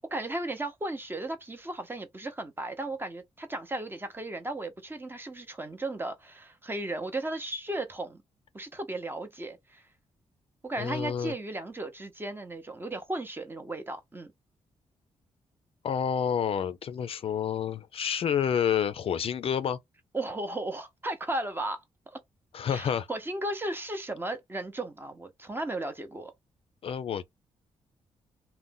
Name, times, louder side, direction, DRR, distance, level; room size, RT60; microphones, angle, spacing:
voice 1, 0.1-8.2 8.5-9.8 10.6-14.3 20.1-22.2 22.7-26.3, right 2 dB, 20° right, 0.7 m, -35 dB
voice 2, 10.8-11.3 15.8-19.8 22.5-23.1 26.8-27.2, left 8 dB, 55° left, 0.4 m, -29 dB
2.5 x 2.1 x 3.7 m
cardioid pair, 90°, 11 cm